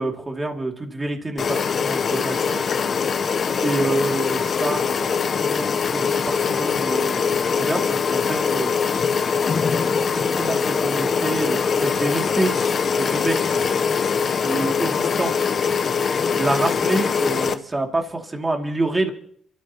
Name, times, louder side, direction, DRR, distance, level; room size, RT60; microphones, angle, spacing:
voice 1, 0.0-2.6 3.6-8.7 10.1-12.5 12.9-13.4 14.3-15.5 16.4-19.1, right 2 dB, 20° right, 2 dB, 2.6 m, -27 dB
sound 1, 1.4-17.5, left 6 dB, 50° left, 0.9 m, -22 dB
28.0 x 13.0 x 3.0 m, 0.63 s
cardioid pair, 90°, 0 cm